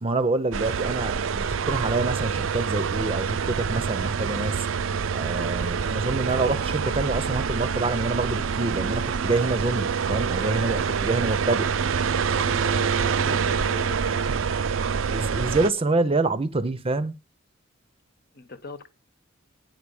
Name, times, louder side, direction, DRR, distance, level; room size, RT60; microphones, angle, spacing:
voice 1, 0.0-4.6 5.1-11.7 15.1-17.2, right 3 dB, 30° right, 0.7 m, -26 dB
sound 1, 0.5-15.7, right 6 dB, 75° right, 0.5 m, -26 dB
voice 2, 12.3-14.6 18.3-18.9, left 3 dB, 50° left, 1.1 m, -40 dB
9.4 x 4.8 x 7.0 m
head